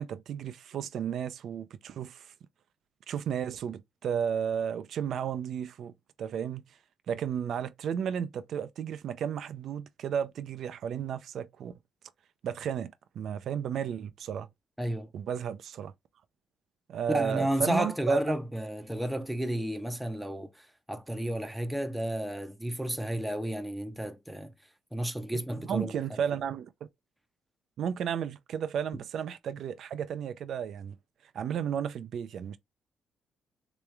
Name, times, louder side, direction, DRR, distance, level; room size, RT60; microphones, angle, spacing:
voice 1, 0.0-2.3 3.1-5.9 6.2-6.6 7.1-11.7 12.4-14.5 15.1-15.9 16.9-18.2 25.7-26.7 27.8-31.0 31.3-32.6, right 8 dB, 65° right, 0.4 m, -33 dB
voice 2, 14.8-15.1 17.1-24.5 24.9-26.2, right 1 dB, 5° right, 0.7 m, -32 dB
3.4 x 3.1 x 3.3 m
cardioid pair, 90°, 0 cm